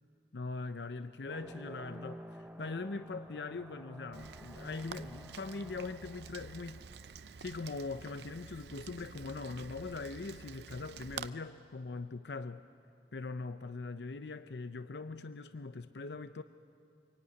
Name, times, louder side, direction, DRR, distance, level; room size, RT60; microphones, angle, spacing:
voice 1, 0.3-6.8 7.4-12.6 13.1-16.4, left 3 dB, 75° left, 11 dB, 0.6 m, -41 dB
sound 1, 1.2-7.4, equal, 5° right, 0.8 m, -50 dB
Rain, 4.1-11.3, right 6 dB, 70° right, 0.7 m, -49 dB
25.0 x 24.0 x 9.7 m, 2.6 s
head